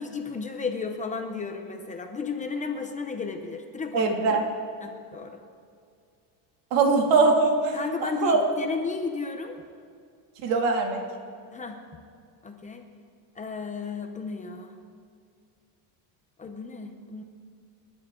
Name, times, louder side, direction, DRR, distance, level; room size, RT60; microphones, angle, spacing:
voice 1, 0.0-4.1 4.8-5.4 7.7-9.6 11.5-11.8 12.4-12.8 13.4-14.7 16.4-17.2, left 4 dB, 15° left, 4 dB, 0.7 m, -33 dB
voice 2, 3.9-4.4 6.7-7.8 8.2-8.4 10.4-11.0, right 4 dB, 85° right, 2 dB, 2.7 m, -21 dB
27.0 x 11.5 x 3.8 m, 2.3 s
cardioid pair, 175°, 48 cm